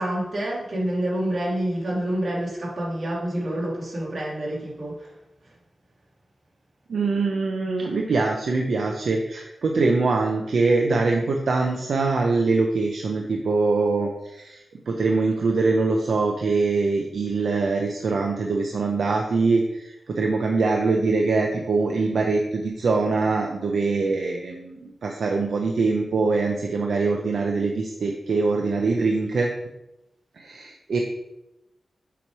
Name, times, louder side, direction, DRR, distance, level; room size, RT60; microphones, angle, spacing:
voice 1, 0.0-5.1 5.4-5.5, right 1 dB, 50° right, -4 dB, 1.9 m, -28 dB
voice 2, 6.9-29.5 30.4-31.0, right 3 dB, 70° right, 1 dB, 0.6 m, -23 dB
6.9 x 3.1 x 4.7 m, 0.90 s
wide cardioid pair, 130°, 0 cm